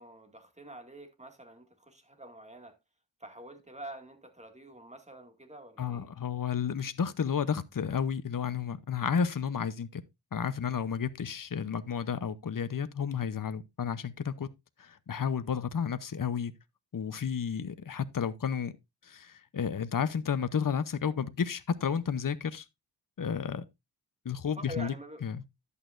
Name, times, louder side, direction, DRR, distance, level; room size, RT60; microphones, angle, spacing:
voice 1, 0.0-2.8 3.2-6.1 24.6-25.2, right 1 dB, 15° right, 2.2 m, -46 dB
voice 2, 5.8-10.0 10.3-14.5 14.8-16.5 16.9-18.8 19.0-22.7 23.2-23.7 24.2-24.9 25.2-25.4, left 7 dB, 50° left, 0.8 m, -32 dB
11.0 x 8.3 x 2.5 m
wide cardioid pair, 70°, 43 cm